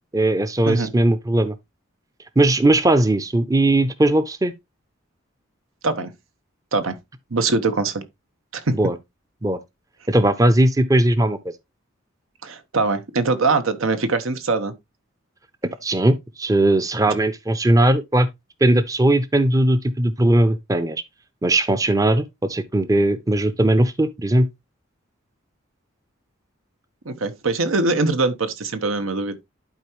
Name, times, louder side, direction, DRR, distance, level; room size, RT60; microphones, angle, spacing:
voice 1, 0.1-1.6 2.4-4.5 8.7-9.0 9.4-9.6 10.1-11.4 15.8-18.3 18.6-21.0 21.4-24.5, right 1 dB, 15° right, 0.5 m, -18 dB
voice 2, 7.3-8.0 8.5-8.8 12.4-14.7 27.0-29.4, right 3 dB, 90° right, 1.0 m, -22 dB
11.5 x 4.5 x 2.9 m
head